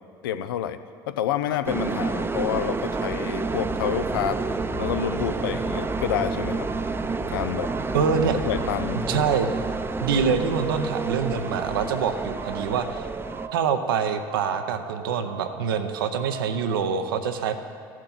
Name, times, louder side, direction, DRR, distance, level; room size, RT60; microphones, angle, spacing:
voice 1, 0.2-0.8 1.1-4.4 4.8-6.7 7.3-7.7 8.3-9.0, left 10 dB, 85° left, 11 dB, 0.5 m, -28 dB
sound 1, 1.7-13.5, right 3 dB, 20° right, 0.6 m, -29 dB
sound 2, 2.9-16.8, right 7 dB, 65° right, 1.1 m, -40 dB
sound 3, 3.4-10.0, left 2 dB, 35° left, 1.7 m, -38 dB
voice 2, 7.9-8.4 9.1-9.5 10.0-13.1 13.5-17.6, right 6 dB, 85° right, 8 dB, 0.7 m, -25 dB
15.5 x 7.3 x 3.9 m, 2.2 s
hypercardioid pair, 65°, 11 cm